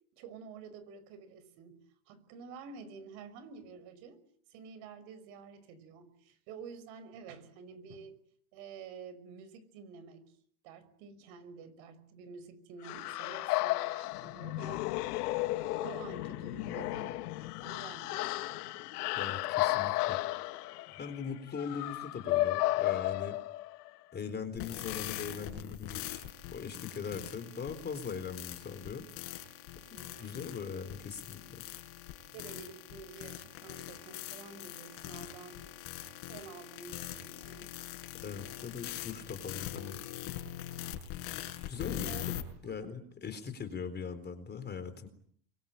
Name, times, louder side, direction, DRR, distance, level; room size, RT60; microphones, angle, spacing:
voice 1, 0.1-1.8 2.1-4.2 4.5-8.2 8.5-10.2 10.6-14.8 15.8-18.8 29.8-30.3 32.3-35.7 36.3-37.7 42.0-42.3 42.6-42.8, right 5 dB, 65° right, 14 dB, 5.8 m, -49 dB
sound 1, 12.8-23.9, left 18 dB, 85° left, 1.6 m, -33 dB
voice 2, 19.2-20.2 21.0-23.4 24.1-26.3 26.5-29.4 30.2-31.6 38.2-40.0 41.7-42.2 42.6-45.1, left 6 dB, 20° left, 10 dB, 4.0 m, -40 dB
sound 2, 24.6-42.4, left 13 dB, 55° left, 6.1 m, -42 dB
28.5 x 23.0 x 9.0 m, 0.62 s
supercardioid pair, 135°, 45 cm